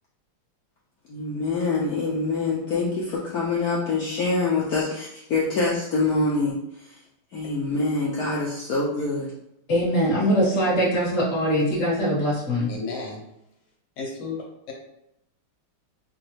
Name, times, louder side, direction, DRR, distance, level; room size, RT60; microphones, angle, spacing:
voice 1, 1.1-7.0 7.3-9.3, left 3 dB, 90° left, -5 dB, 0.8 m, -25 dB
voice 2, 9.7-12.7, equal, 35° left, -6 dB, 1.4 m, -22 dB
voice 3, 12.7-13.2 14.0-14.3 14.7-14.8, left 4 dB, 70° left, -1 dB, 1.6 m, -33 dB
5.0 x 2.3 x 3.1 m, 0.80 s
omnidirectional pair, 2.4 m